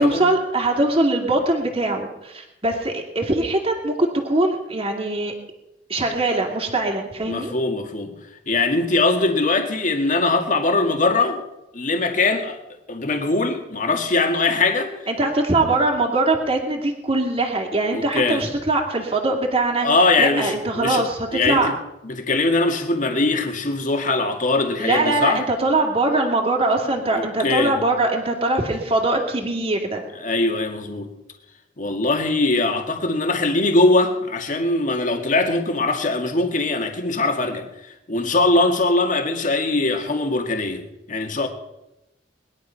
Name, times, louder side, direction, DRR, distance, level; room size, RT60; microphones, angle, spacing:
voice 1, 0.0-5.3 5.9-7.5 15.1-19.9 20.2-21.7 24.8-30.0, right 2 dB, 30° right, 2.4 m, -22 dB
voice 2, 7.2-8.1 8.5-11.4 11.7-12.6 12.9-14.9 17.9-18.4 19.8-21.0 21.3-21.7 22.0-25.4 27.1-27.8 30.2-31.1 31.8-37.7 38.1-40.8 41.1-41.5, left 2 dB, 45° left, 2.0 m, -21 dB
20.5 x 11.0 x 5.8 m
head